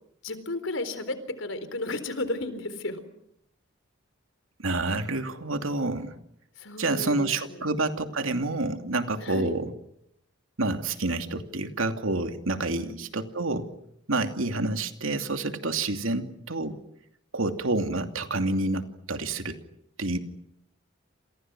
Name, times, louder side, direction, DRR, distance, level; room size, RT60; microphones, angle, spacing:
voice 1, 0.2-3.0 6.6-7.7 9.2-9.6 12.7-13.0, left 2 dB, 70° left, 12 dB, 4.1 m, -33 dB
voice 2, 4.6-6.2 6.8-9.7 10.6-13.7 14.1-16.8 17.3-19.6 20.0-20.2, right 2 dB, 85° right, 7 dB, 2.8 m, -28 dB
29.0 x 28.5 x 6.2 m, 0.74 s
head